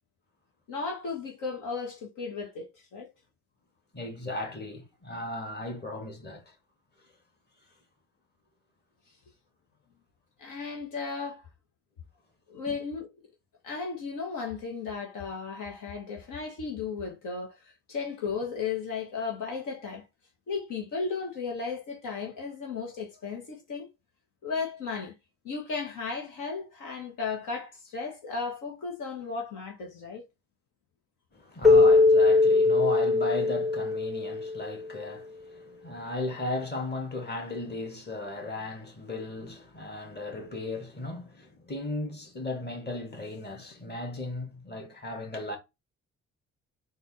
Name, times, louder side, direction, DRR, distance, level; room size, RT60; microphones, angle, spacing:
voice 1, 0.7-3.1 10.4-11.5 12.5-13.1 13.6-20.0 20.5-23.9 24.4-25.1 25.4-30.3, left 5 dB, 70° left, 1.3 m, -35 dB
voice 2, 3.9-6.5 12.7-12.8 31.3-45.6, left 2 dB, 30° left, 2.0 m, -36 dB
Keyboard (musical), 31.6-34.8, left 3 dB, ahead, 0.7 m, -21 dB
4.0 x 2.6 x 4.2 m
supercardioid pair, 65°, 32 cm